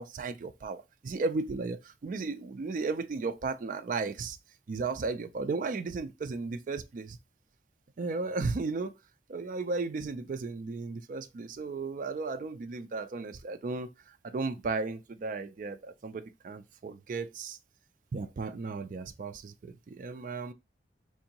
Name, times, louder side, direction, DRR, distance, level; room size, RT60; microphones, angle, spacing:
voice 1, 0.0-4.4 4.7-7.2 8.0-8.9 9.3-17.6 18.1-20.5, right 3 dB, 45° right, 0.3 m, -35 dB
4.6 x 2.6 x 2.8 m
head